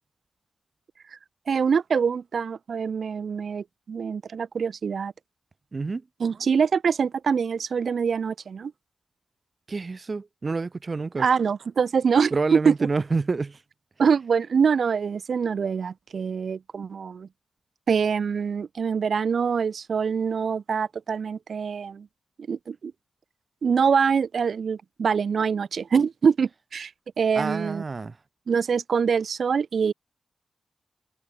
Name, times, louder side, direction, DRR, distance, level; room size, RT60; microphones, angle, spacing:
voice 1, 1.5-5.1 6.2-8.7 11.2-12.7 14.0-17.3 17.9-22.1 22.5-22.9 23.6-26.9 27.2-27.8 28.5-29.9, right 6 dB, 80° right, 0.8 m, -24 dB
voice 2, 5.7-6.0 9.7-11.3 12.3-13.6 27.3-28.2, right 4 dB, 45° right, 1.0 m, -28 dB
cardioid pair, 75°, 0 cm